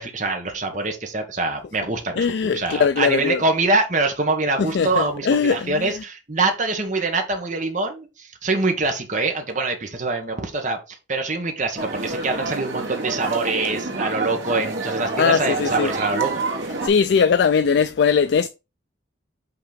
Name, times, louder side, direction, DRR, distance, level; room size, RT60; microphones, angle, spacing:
voice 1, 0.0-16.4, right 3 dB, 40° right, 1.2 m, -24 dB
voice 2, 2.1-3.4 4.6-5.9 15.2-15.9 16.8-18.5, left 6 dB, 60° left, 0.3 m, -20 dB
sound 1, 11.8-16.9, right 3 dB, 75° right, 2.2 m, -28 dB
5.9 x 3.7 x 5.0 m
head